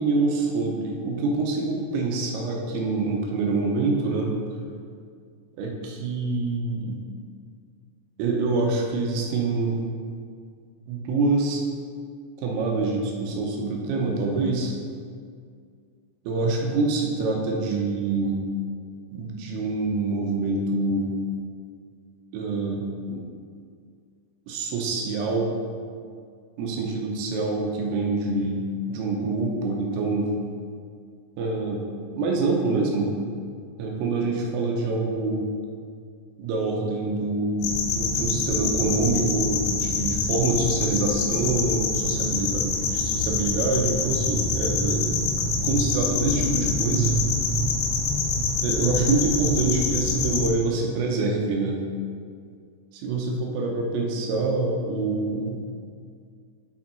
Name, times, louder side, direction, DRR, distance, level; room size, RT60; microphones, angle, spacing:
voice 1, 0.0-4.4 5.6-7.0 8.2-9.8 10.9-11.6 12.4-14.7 16.2-18.4 19.1-21.1 22.3-23.2 24.5-25.5 26.6-28.6 28.9-30.3 31.4-31.9 32.2-33.1 33.8-35.5 36.4-45.2 45.6-47.2 48.6-51.8 53.0-55.6, right 3 dB, 85° right, 0 dB, 3.5 m, -26 dB
sound 1, 37.6-50.5, left 3 dB, 75° left, 2.7 m, -25 dB
9.4 x 5.9 x 4.0 m, 2.1 s
omnidirectional pair, 6.0 m